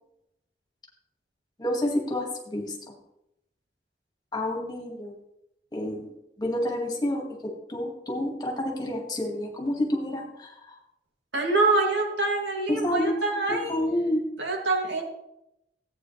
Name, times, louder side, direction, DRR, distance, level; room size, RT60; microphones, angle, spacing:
voice 1, 1.6-2.9 4.3-5.1 5.7-6.1 6.4-10.8 12.7-13.2 13.5-14.2, left 1 dB, 20° left, 0 dB, 2.0 m, -29 dB
voice 2, 11.3-13.8 14.4-15.0, right 3 dB, 85° right, 1 dB, 2.4 m, -25 dB
15.5 x 8.7 x 3.3 m, 0.83 s
head